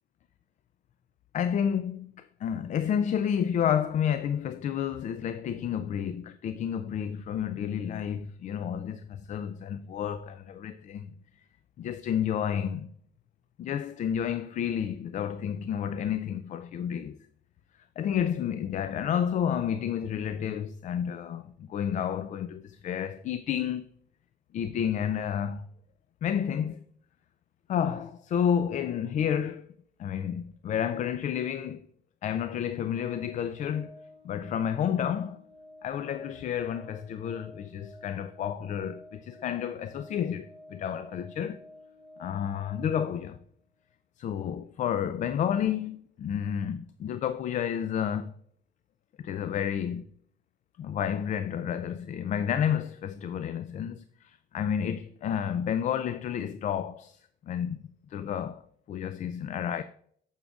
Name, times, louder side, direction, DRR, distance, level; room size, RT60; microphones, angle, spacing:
voice 1, 1.3-11.1 11.8-12.9 13.6-17.2 18.0-23.9 24.5-25.7 26.2-26.8 27.7-29.7 30.0-31.9 32.2-34.0 34.2-35.4 35.8-41.6 42.2-43.4 44.2-48.3 49.2-50.1 50.8-58.6 58.9-59.8, left 8 dB, 45° left, 0.4 m, -30 dB
Organ, 32.9-43.6, left 1 dB, 30° right, 1.2 m, -52 dB
9.2 x 7.3 x 2.4 m
cardioid pair, 110°, 17 cm